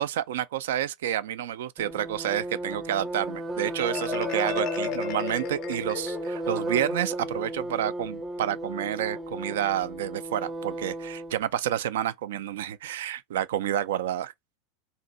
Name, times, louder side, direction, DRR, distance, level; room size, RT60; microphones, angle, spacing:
voice 1, 0.0-14.3, right 11 dB, 65° right, 0.3 m, -29 dB
sound 1, 1.8-11.4, right 1 dB, 20° right, 0.7 m, -34 dB
Marimba xylophone, 3.8-6.5, left 10 dB, 45° left, 0.4 m, -35 dB
2.6 x 2.5 x 4.1 m
figure-of-eight pair, 80°, 0 cm